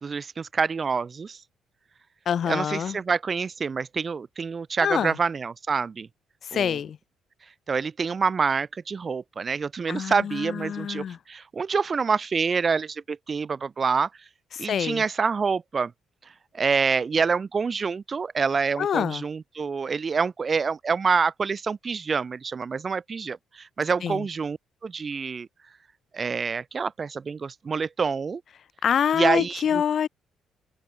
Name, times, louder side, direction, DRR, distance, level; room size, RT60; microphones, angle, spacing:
voice 1, 0.0-1.4 2.5-6.1 6.5-6.8 7.7-14.1 14.6-15.9 16.5-24.6 24.8-25.5 26.1-28.4 29.1-29.8, right 5 dB, 35° right, 1.6 m, -27 dB
voice 2, 2.3-3.0 4.8-5.2 6.4-7.0 9.9-11.2 14.5-15.0 18.8-19.2 24.0-24.3 28.8-30.1, left 8 dB, 50° left, 1.0 m, -26 dB
figure-of-eight pair, 45°, 0 cm